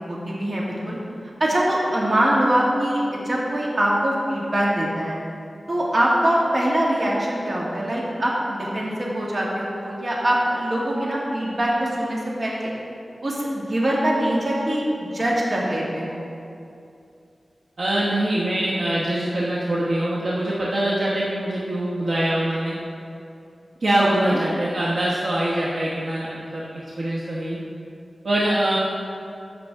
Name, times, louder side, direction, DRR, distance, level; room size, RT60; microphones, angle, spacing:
voice 1, 0.1-1.0 1.4-5.2 5.7-12.7 13.2-14.8 15.1-16.3 24.0-24.4, right 1 dB, 45° right, -5 dB, 2.0 m, -23 dB
voice 2, 17.8-22.8 23.8-26.6 27.0-27.6 28.2-28.8, right 1 dB, 70° right, -7 dB, 1.2 m, -23 dB
14.0 x 5.9 x 3.6 m, 2.6 s
wide cardioid pair, 85°, 0 cm